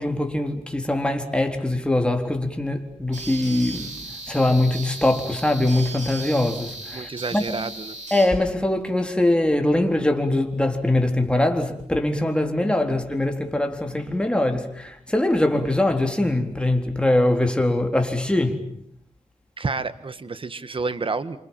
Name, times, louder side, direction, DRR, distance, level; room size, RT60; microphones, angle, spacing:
voice 1, 0.0-4.0 4.3-7.6 8.1-18.6, left 1 dB, 10° left, 3.8 m, -22 dB
sound 1, 3.1-8.3, right 3 dB, 90° right, 7.5 m, -37 dB
voice 2, 6.9-8.0 19.6-21.4, right 4 dB, 45° right, 1.6 m, -29 dB
27.5 x 26.5 x 7.5 m
cardioid pair, 65°, 12 cm